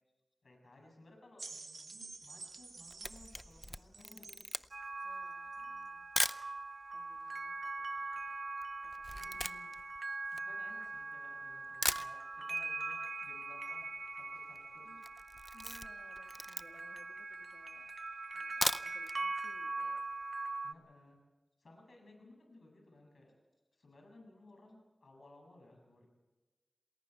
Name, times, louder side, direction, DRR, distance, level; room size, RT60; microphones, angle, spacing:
voice 1, 0.4-4.3 9.2-9.7 10.3-14.9 16.6-16.7 20.6-21.2 21.6-23.3 23.7-26.1, left 2 dB, 80° left, 1 dB, 7.1 m, -60 dB
sound 1, 1.4-4.7 5.5-5.6, right 4 dB, 85° right, 1.5 m, -50 dB
Camera, 2.6-6.5 7.2-7.3 7.5-11.1 11.5-11.6 11.8-12.7 12.9-13.0 13.3-13.4 13.6-14.0 14.4-14.6 15.0-17.0 17.5-17.6 18.4-19.2 19.5-19.6 20.0-20.1, equal, 10° left, 0.6 m, -39 dB
voice 2, 3.7-4.6 5.0-6.1 6.9-8.4 8.8-9.8 14.8-15.0 15.5-17.9 18.3-20.1, left 2 dB, 45° left, 2 dB, 1.9 m, -64 dB
sound 2, 4.7-20.7, right 3 dB, 70° right, 1.0 m, -42 dB
28.0 x 20.5 x 4.6 m, 1.2 s
wide cardioid pair, 75°, 0 cm